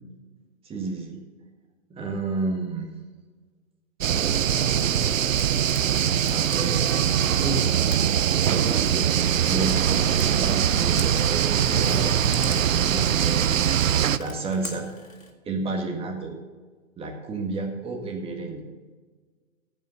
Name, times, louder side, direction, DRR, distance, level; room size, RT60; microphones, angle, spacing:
voice 1, 0.6-1.2 1.9-2.9 6.0-7.1 7.4-7.6 8.4-13.5 14.2-14.8 15.4-16.3 17.0-18.7, right 3 dB, 15° right, 2 dB, 1.7 m, -31 dB
sound 1, 4.0-14.2, right 9 dB, 80° right, 0.6 m, -22 dB
Frying (food), 5.4-15.3, left 3 dB, 80° left, 2.1 m, -45 dB
14.5 x 5.6 x 6.5 m, 1.4 s
figure-of-eight pair, 120°, 39 cm